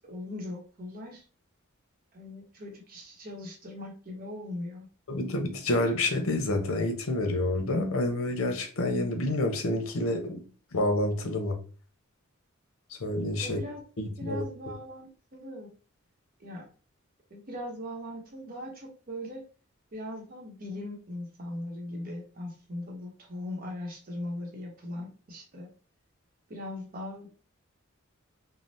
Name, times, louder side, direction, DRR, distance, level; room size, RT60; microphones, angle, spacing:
voice 1, 0.1-1.2 2.1-4.9 13.4-13.8 14.2-15.7 16.4-16.6 17.3-19.4 19.9-25.7 26.5-27.3, left 1 dB, 45° right, 0.8 m, -39 dB
voice 2, 5.1-10.4 10.7-11.6 12.9-13.6 14.0-14.4, left 1 dB, 80° left, 0.6 m, -28 dB
3.2 x 2.0 x 2.6 m
head